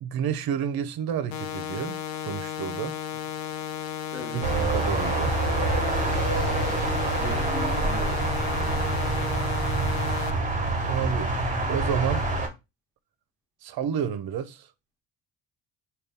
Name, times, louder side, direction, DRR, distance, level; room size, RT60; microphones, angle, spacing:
voice 1, 0.0-3.0 4.3-5.4 10.9-11.3 11.7-12.3 13.6-14.7, right 8 dB, 55° right, 0.6 m, -30 dB
sound 1, 1.3-10.3, left 9 dB, 90° left, 0.6 m, -34 dB
voice 2, 4.1-4.4 7.2-8.9, left 1 dB, 5° left, 1.1 m, -39 dB
sound 2, 4.4-12.5, right 2 dB, 20° right, 1.1 m, -26 dB
3.8 x 2.4 x 3.4 m
cardioid pair, 90°, 43 cm